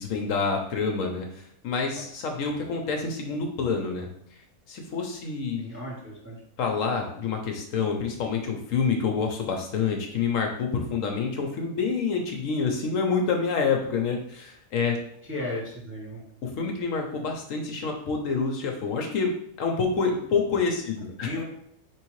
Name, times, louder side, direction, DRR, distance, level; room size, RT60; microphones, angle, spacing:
voice 1, 0.0-4.1 4.7-5.7 6.6-15.0 16.4-19.3 19.6-21.3, left 5 dB, 70° left, 2 dB, 1.0 m, -27 dB
voice 2, 5.6-6.4 15.3-16.2 21.2-21.4, left 1 dB, 10° right, -4 dB, 0.8 m, -35 dB
4.6 x 3.1 x 3.1 m, 0.67 s
omnidirectional pair, 1.5 m